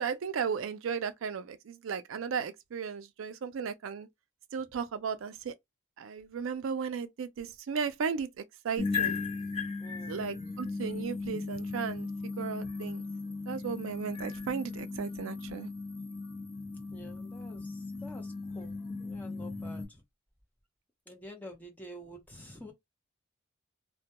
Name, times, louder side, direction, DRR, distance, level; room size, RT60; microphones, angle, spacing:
voice 1, 0.0-4.1 4.5-5.5 6.0-9.2 10.1-12.1 12.4-13.0 13.5-15.7, right 6 dB, 70° right, 0.4 m, -35 dB
sound 1, 8.8-19.9, left 4 dB, 30° left, 1.0 m, -37 dB
voice 2, 9.8-10.3 16.9-20.0 21.1-22.7, equal, 10° left, 0.7 m, -49 dB
2.2 x 2.1 x 2.8 m
head